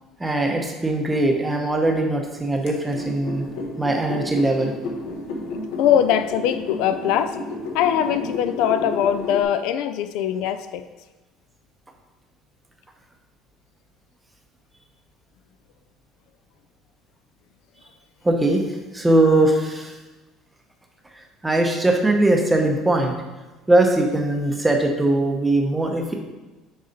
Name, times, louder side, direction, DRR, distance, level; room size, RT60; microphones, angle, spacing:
voice 1, 0.2-3.4 3.8-4.7 18.2-18.6 18.9-19.9 21.4-23.1 23.7-26.1, right 2 dB, 10° right, 2 dB, 0.7 m, -20 dB
sound 1, 2.7-9.4, left 2 dB, 85° left, 1.3 m, -32 dB
voice 2, 5.8-7.4 7.7-10.9, left 9 dB, 70° left, 11 dB, 0.4 m, -21 dB
6.6 x 4.1 x 5.1 m, 1.2 s
cardioid pair, 175°, 0 cm